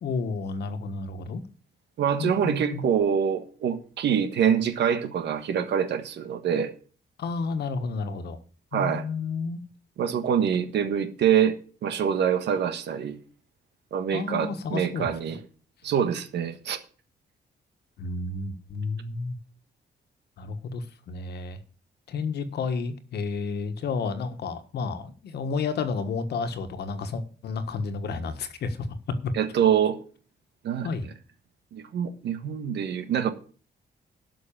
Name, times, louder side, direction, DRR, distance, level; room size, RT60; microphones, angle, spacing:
voice 1, 0.0-1.4 2.2-2.8 7.2-8.4 8.7-9.6 14.1-15.1 18.0-19.4 20.4-21.6 22.1-28.8 29.2-29.3 30.8-31.1, left 4 dB, 70° left, 1.4 m, -31 dB
voice 2, 2.0-6.7 8.7-9.0 10.0-13.2 13.9-15.4 15.8-16.8 29.3-30.0 30.6-30.9 31.7-33.3, right 8 dB, 85° right, 1.5 m, -25 dB
12.0 x 6.2 x 7.3 m
wide cardioid pair, 165°, 17 cm